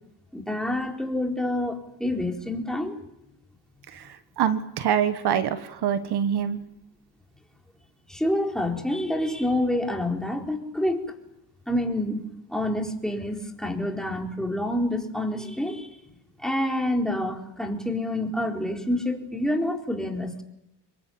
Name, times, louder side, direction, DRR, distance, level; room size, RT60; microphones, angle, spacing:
voice 1, 0.3-3.0 8.1-11.0 11.7-12.2 12.5-15.9 16.4-20.4, left 1 dB, ahead, 2 dB, 4.1 m, -27 dB
voice 2, 3.9-6.6, right 8 dB, 65° right, 11 dB, 1.5 m, -25 dB
26.5 x 22.5 x 9.0 m, 0.86 s
cardioid pair, 110°, 42 cm